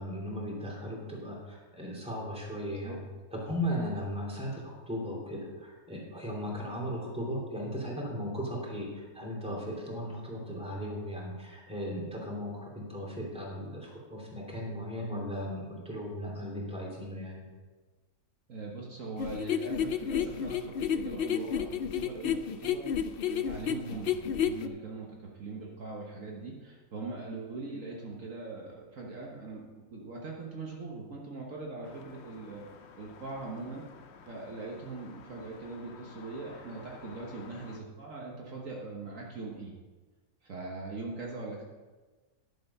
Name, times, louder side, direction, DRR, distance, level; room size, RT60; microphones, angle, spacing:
voice 1, 0.0-3.0 3.3-17.4, equal, 5° right, -4 dB, 3.0 m, -37 dB
voice 2, 18.5-32.6 32.9-33.8 34.3-39.7 40.4-41.6, right 3 dB, 60° right, -2 dB, 1.7 m, -41 dB
sound 1, 19.2-24.7, left 8 dB, 90° left, 0.5 m, -30 dB
sound 2, 31.8-37.8, left 5 dB, 55° left, 0.9 m, -52 dB
11.0 x 7.6 x 5.5 m, 1.3 s
omnidirectional pair, 1.6 m